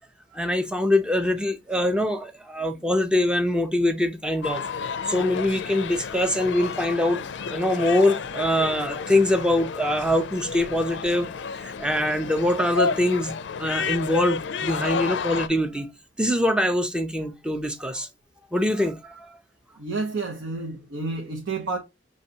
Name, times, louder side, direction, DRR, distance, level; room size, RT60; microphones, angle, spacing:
voice 1, 0.3-4.6 5.1-13.3 13.6-15.9 16.2-18.1 18.5-19.4, left 1 dB, 5° right, 0.4 m, -24 dB
sound 1, 4.4-15.5, left 5 dB, 70° left, 0.4 m, -31 dB
voice 2, 19.8-21.8, right 3 dB, 85° right, 0.8 m, -30 dB
5.5 x 3.1 x 2.7 m
head